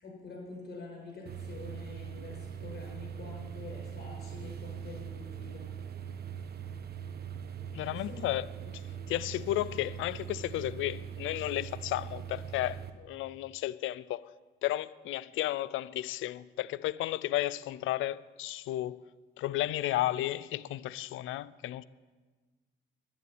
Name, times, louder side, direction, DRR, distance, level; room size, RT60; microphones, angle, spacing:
voice 1, 0.0-5.7 7.9-8.3, left 3 dB, 55° left, 6.5 m, -46 dB
sound 1, 1.2-12.9, right 8 dB, 55° right, 1.2 m, -42 dB
voice 2, 7.7-8.5 8.7-14.2 14.6-19.1 19.4-21.8, left 15 dB, 85° left, 0.5 m, -33 dB
11.5 x 11.0 x 9.5 m
cardioid pair, 90°, 20 cm